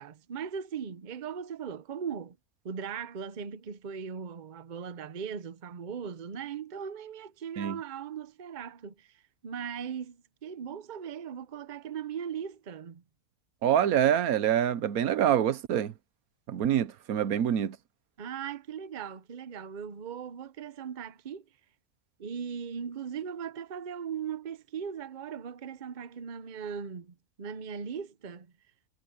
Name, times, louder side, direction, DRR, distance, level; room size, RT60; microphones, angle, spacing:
voice 1, 0.0-2.4 2.6-9.1 9.4-13.0 18.2-21.4 22.2-28.5, right 7 dB, 40° right, 0.8 m, -38 dB
voice 2, 13.6-15.9 16.5-17.8, right 10 dB, 85° right, 1.3 m, -26 dB
omnidirectional pair, 1.5 m